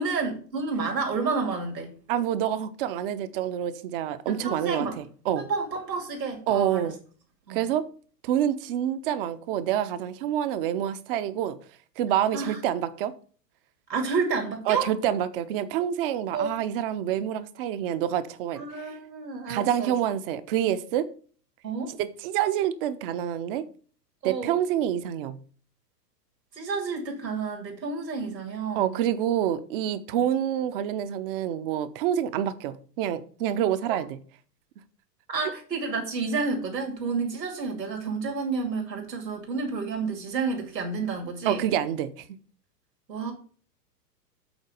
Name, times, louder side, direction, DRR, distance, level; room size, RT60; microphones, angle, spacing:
voice 1, 0.0-2.0 4.3-5.0 5.4-6.9 7.5-7.7 12.3-12.6 13.9-14.9 16.3-16.5 18.6-19.9 21.6-21.9 24.2-24.6 26.5-28.9 35.3-41.6 43.1-43.3, right 4 dB, 75° right, 2.5 m, -30 dB
voice 2, 2.1-5.5 6.5-7.0 7.5-7.8 8.2-11.6 12.0-13.1 14.7-18.6 19.5-21.1 22.0-23.7 24.2-25.4 28.8-34.2 41.4-42.1, right 10 dB, 35° right, 0.7 m, -27 dB
8.1 x 4.1 x 6.7 m
figure-of-eight pair, 110°, 50 cm